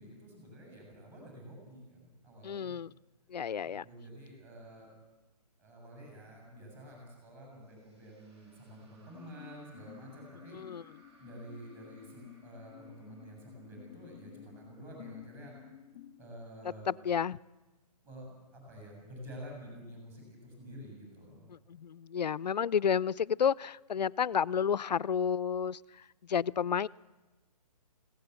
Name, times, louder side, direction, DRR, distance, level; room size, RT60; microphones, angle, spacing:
voice 1, 0.0-2.7 3.6-4.9 5.6-10.6 11.2-15.5 16.2-16.9 18.0-21.5, equal, 15° right, 0 dB, 7.2 m, -49 dB
voice 2, 2.4-2.9 3.3-3.8 10.5-10.8 16.9-17.4 21.7-25.8 26.3-26.9, left 7 dB, 80° left, 21 dB, 0.6 m, -31 dB
sound 1, 7.6-14.9, right 2 dB, 40° right, 7.8 m, -65 dB
sound 2, 9.1-16.4, left 11 dB, 20° left, 1.2 m, -53 dB
20.5 x 16.5 x 8.1 m, 1.1 s
hypercardioid pair, 170°, 21 cm